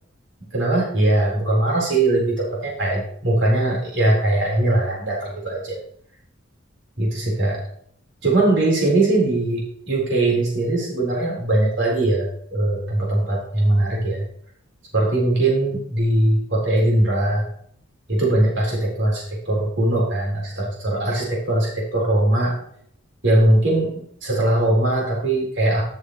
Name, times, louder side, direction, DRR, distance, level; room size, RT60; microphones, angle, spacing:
voice 1, 0.5-5.8 7.0-7.6 8.2-14.2 14.9-17.5 18.1-22.6 23.2-25.8, right 1 dB, 65° right, -3 dB, 4.2 m, -20 dB
13.0 x 6.7 x 3.2 m, 0.65 s
head